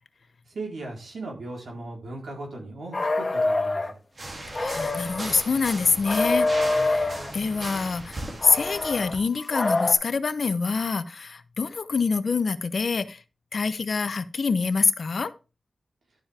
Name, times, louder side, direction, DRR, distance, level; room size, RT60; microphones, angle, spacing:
voice 1, 0.5-4.0, right 2 dB, 90° right, 4.3 m, -37 dB
sound 1, 2.9-3.9 4.5-5.4 6.0-7.3 8.4-9.9, left 2 dB, 35° left, 1.6 m, -26 dB
sound 2, 4.2-9.2, right 1 dB, 50° right, 3.0 m, -38 dB
voice 2, 4.6-13.2 13.5-15.3, left 4 dB, 65° left, 0.9 m, -26 dB
12.0 x 7.4 x 3.6 m
wide cardioid pair, 95°, 0 cm